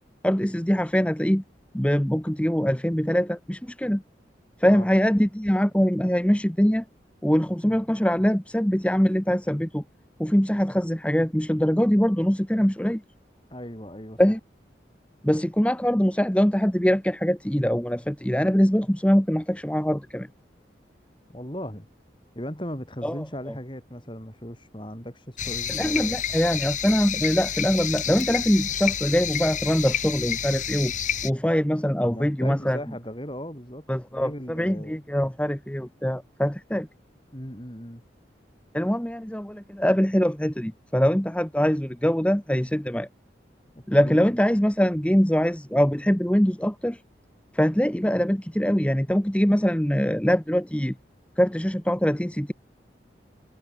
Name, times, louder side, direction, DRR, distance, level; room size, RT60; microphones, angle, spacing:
voice 1, 0.2-1.4 1.7-4.0 4.6-6.8 7.2-9.8 10.2-13.0 14.2-14.4 15.2-20.3 23.0-23.3 25.7-30.9 31.2-32.8 33.9-36.9 38.7-43.1 43.9-47.0 47.5-50.9 51.4-52.5, equal, 5° left, 1.1 m, -23 dB
voice 2, 13.5-14.2 21.3-21.9 22.4-26.2 32.0-35.0 37.3-38.0 44.0-44.3, equal, 25° left, 7.0 m, -37 dB
sound 1, 25.4-31.3, left 9 dB, 45° left, 3.3 m, -29 dB
head